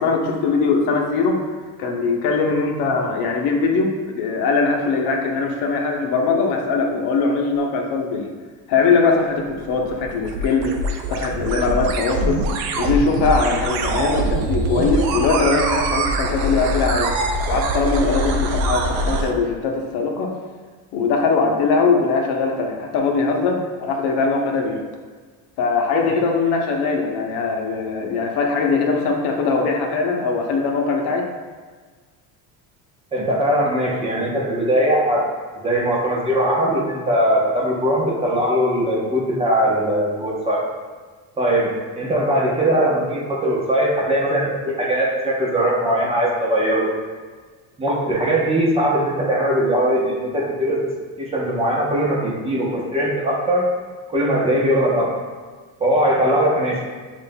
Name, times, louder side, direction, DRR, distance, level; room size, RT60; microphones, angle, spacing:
voice 1, 0.0-1.4 1.8-8.3 8.7-10.8 11.1-12.5 12.8-17.1 17.5-20.3 20.9-24.9 25.6-31.3, left 4 dB, 70° left, 1 dB, 0.8 m, -21 dB
sound 1, 9.4-19.3, right 2 dB, 80° right, 0.6 m, -23 dB
voice 2, 33.1-35.2 35.5-40.6 41.4-46.9 47.8-50.8 51.2-53.6 54.1-55.1 55.8-56.8, right 1 dB, 15° right, -4 dB, 0.8 m, -20 dB
7.3 x 2.5 x 2.2 m, 1.5 s
cardioid pair, 135°, 40 cm